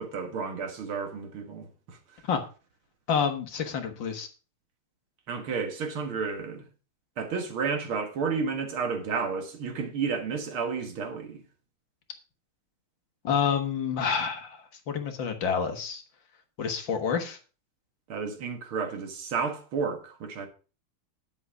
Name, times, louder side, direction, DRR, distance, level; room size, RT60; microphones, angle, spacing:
voice 1, 0.0-2.0 5.3-6.6 7.2-11.4 18.1-20.5, right 5 dB, 75° right, 2.5 m, -31 dB
voice 2, 3.1-4.3 13.2-16.0 16.6-17.4, left 6 dB, 65° left, 2.1 m, -28 dB
10.5 x 7.0 x 4.8 m
omnidirectional pair, 2.3 m